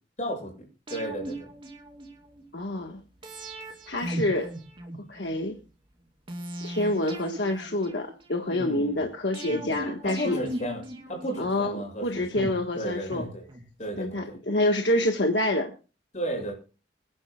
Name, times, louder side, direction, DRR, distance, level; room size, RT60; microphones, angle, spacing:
voice 1, 0.2-1.5 8.5-9.0 9.5-10.8 11.1-12.5 12.8-13.5 13.8-14.4 16.1-16.5, right 1 dB, 40° left, 1 dB, 7.1 m, -34 dB
sound 1, 0.9-2.4 3.2-5.4 6.3-8.5 9.3-11.7 12.4-14.0 14.3-14.4, right 1 dB, 30° right, 2.7 m, -38 dB
voice 2, 2.5-3.0 3.9-4.5 5.1-5.6 6.6-10.4 11.4-13.3 14.0-15.7, left 1 dB, 75° left, 3 dB, 1.4 m, -27 dB
26.0 x 10.5 x 2.3 m, 0.34 s
head